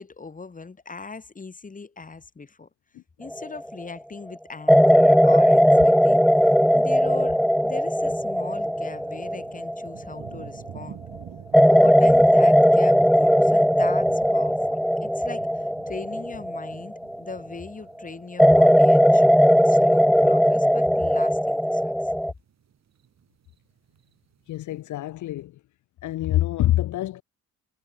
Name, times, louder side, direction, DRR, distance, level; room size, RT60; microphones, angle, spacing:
voice 1, 0.0-2.7 3.2-7.4 7.6-11.0 11.7-19.3 19.6-22.0, left 4 dB, 25° left, 3.6 m, -39 dB
sound 1, 3.3-3.7 4.7-10.6 11.5-17.5 18.4-22.3, equal, ahead, 1.1 m, -18 dB
sound 2, 6.5-24.9, right 9 dB, 60° right, 7.2 m, -48 dB
voice 2, 24.5-25.6 26.0-27.2, left 14 dB, 75° left, 1.0 m, -25 dB
cardioid pair, 90°, 30 cm